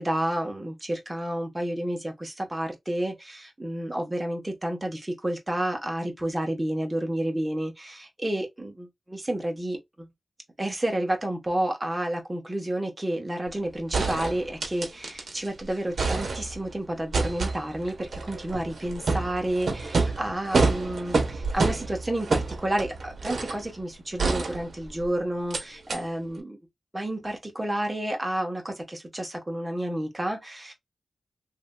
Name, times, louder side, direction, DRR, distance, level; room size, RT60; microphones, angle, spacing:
voice 1, 0.0-10.1 10.6-26.6 26.9-30.7, right 1 dB, 15° right, 1.0 m, -30 dB
sound 1, 13.5-13.6 13.9-15.5 15.8-16.7 17.1-23.7 24.2-25.0 25.5-25.6 25.9-26.0, right 3 dB, 70° right, 0.9 m, -28 dB
3.2 x 2.7 x 2.3 m
wide cardioid pair, 115°, 0 cm